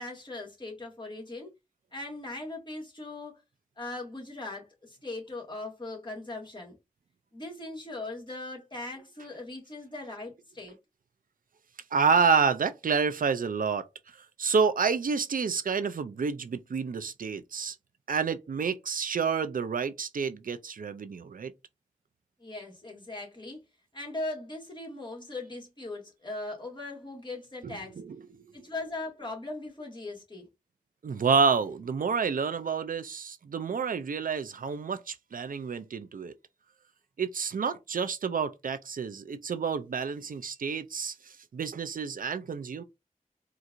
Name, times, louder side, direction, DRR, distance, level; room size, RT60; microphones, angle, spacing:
voice 1, 0.0-1.5 1.9-3.4 3.8-6.8 7.3-10.8 22.4-23.6 23.9-28.0 28.5-30.5, left 2 dB, 35° left, 1.9 m, -39 dB
voice 2, 11.9-13.9 14.4-17.8 18.1-21.5 27.6-28.4 31.0-36.3 37.2-41.1 41.5-42.8, right 5 dB, 90° right, 0.4 m, -29 dB
4.4 x 2.5 x 2.5 m
wide cardioid pair, 55°, 14 cm